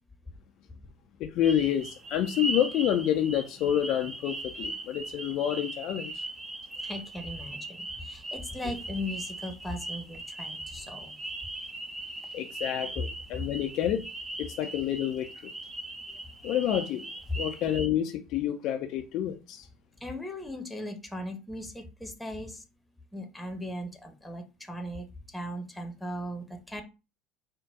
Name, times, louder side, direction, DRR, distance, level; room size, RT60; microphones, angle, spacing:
voice 1, 1.2-6.2 12.3-14.0 14.4-15.5 16.4-17.1 17.4-19.7, left 10 dB, 50° left, 0.4 m, -28 dB
sound 1, 1.4-17.9, right 2 dB, 20° right, 0.7 m, -39 dB
voice 2, 6.8-11.2 16.1-16.2 20.0-22.6 23.1-26.8, left 1 dB, 5° left, 1.0 m, -38 dB
3.8 x 2.2 x 3.5 m
figure-of-eight pair, 65°, 0 cm